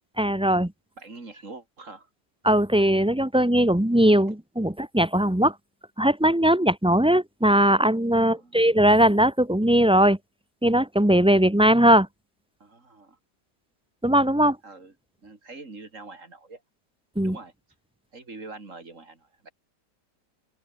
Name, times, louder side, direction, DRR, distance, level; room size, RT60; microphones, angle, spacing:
voice 1, 0.2-0.7 2.4-5.5 6.0-10.2 10.6-12.1 14.0-14.6 17.2-17.4, right 1 dB, 5° right, 1.0 m, -20 dB
voice 2, 1.0-2.1 8.2-8.6 12.6-13.2 14.6-14.9 15.2-16.6 17.2-17.5 18.1-19.5, right 3 dB, 45° right, 3.5 m, -44 dB
open air
omnidirectional pair, 1.9 m